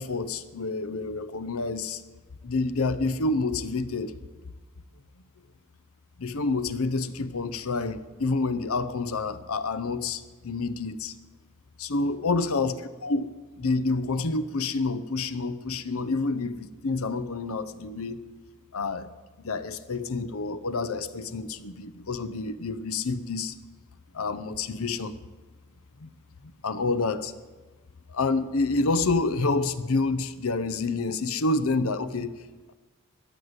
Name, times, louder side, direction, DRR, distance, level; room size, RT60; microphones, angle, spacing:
voice 1, 0.0-2.0 2.4-4.1 6.2-11.2 11.8-13.3 13.6-18.2 18.7-19.1 19.4-23.5 24.1-25.2 26.0-26.1 26.4-27.3 28.1-32.4, left 3 dB, 70° left, 13 dB, 0.8 m, -28 dB
14.0 x 9.6 x 8.0 m, 1.3 s
head